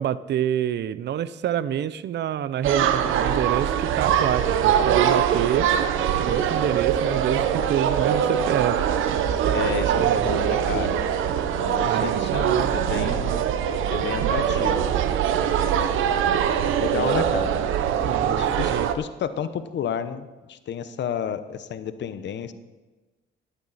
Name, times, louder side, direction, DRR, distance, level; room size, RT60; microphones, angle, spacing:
voice 1, 0.0-5.7 6.2-8.9 10.0-10.3 11.8-12.7 18.0-18.9, right 10 dB, 60° right, 16 dB, 0.6 m, -27 dB
sound 1, 2.6-18.9, right 9 dB, 85° right, 0.9 m, -23 dB
voice 2, 9.5-11.0 11.5-13.4 13.9-14.9 16.8-17.5 18.4-22.5, left 8 dB, 65° left, 12 dB, 1.0 m, -31 dB
13.0 x 11.5 x 4.2 m, 1.2 s
cardioid pair, 90°, 20 cm